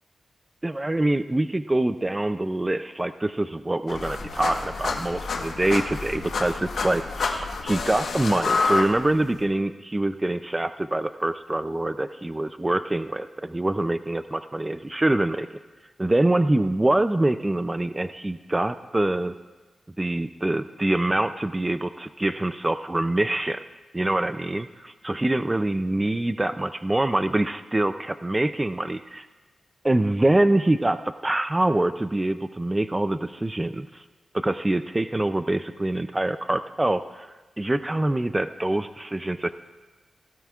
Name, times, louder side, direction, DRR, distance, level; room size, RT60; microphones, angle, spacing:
voice 1, 0.6-15.5 16.0-19.3 20.0-23.6 23.9-29.3 29.8-34.0 34.3-39.5, right 1 dB, 15° right, 10 dB, 0.4 m, -25 dB
sound 1, 3.9-9.4, left 4 dB, 80° left, 1.2 m, -28 dB
17.0 x 16.0 x 2.4 m, 1.2 s
wide cardioid pair, 110°, 0 cm